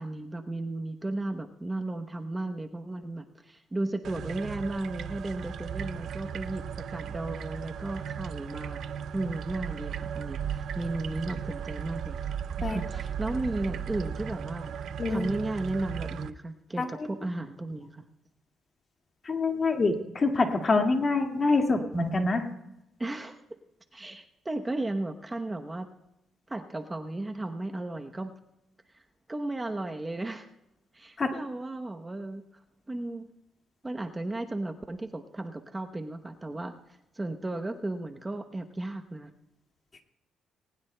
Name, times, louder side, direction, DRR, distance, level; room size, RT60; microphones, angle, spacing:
voice 1, 0.0-8.8 9.1-14.7 15.1-18.0 23.0-23.4 23.9-25.9 26.5-28.3 29.3-30.5 30.9-32.4 32.9-33.3 33.8-36.8 37.1-39.3, right 2 dB, 20° right, 5 dB, 0.9 m, -34 dB
sound 1, 4.0-16.3, right 8 dB, 65° right, 0.5 m, -36 dB
voice 2, 16.8-17.1 19.2-22.5 31.2-31.3, left 3 dB, 35° left, 3 dB, 2.0 m, -26 dB
20.0 x 19.0 x 2.2 m, 0.87 s
cardioid pair, 90°, 0 cm